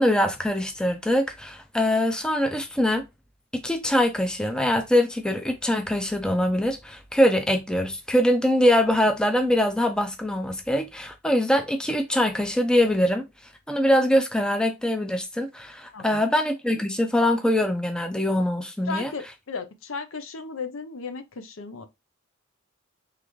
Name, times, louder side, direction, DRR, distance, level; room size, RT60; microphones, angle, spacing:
voice 1, 0.0-3.0 3.6-13.3 13.7-19.1, left 1 dB, 5° left, 0.5 m, -23 dB
voice 2, 15.9-16.3 18.9-21.9, left 4 dB, 65° left, 0.6 m, -35 dB
3.8 x 3.3 x 3.1 m
head